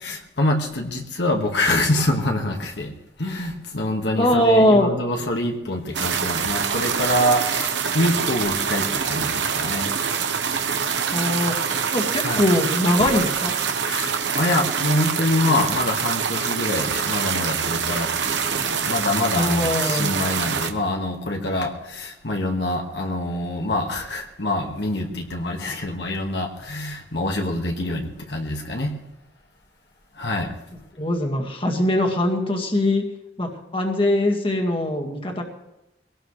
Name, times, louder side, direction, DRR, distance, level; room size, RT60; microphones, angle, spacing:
voice 1, 0.0-2.9 3.2-9.9 12.2-12.4 13.8-28.9 30.2-30.5, left 1 dB, 70° left, 1 dB, 1.9 m, -25 dB
voice 2, 4.2-4.9 11.1-11.5 11.9-13.5 15.4-15.5 19.3-20.2 30.9-33.0 33.4-35.4, left 1 dB, 30° left, 2 dB, 2.0 m, -21 dB
sound 1, 5.9-20.7, right 7 dB, 90° right, 1.2 m, -25 dB
22.5 x 18.0 x 3.3 m, 0.92 s
head